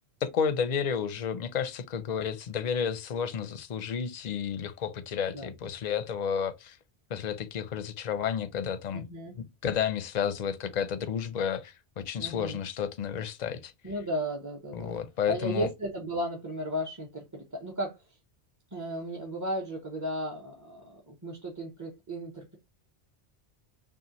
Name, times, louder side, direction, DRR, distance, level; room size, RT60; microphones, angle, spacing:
voice 1, 0.2-6.8 7.1-9.1 9.3-13.7 14.7-15.7, left 7 dB, 50° left, 0.6 m, -31 dB
voice 2, 8.9-9.3 12.2-12.6 13.8-15.0 15.3-18.0 18.7-22.6, equal, 20° right, 0.7 m, -35 dB
5.6 x 2.4 x 2.9 m
omnidirectional pair, 1.1 m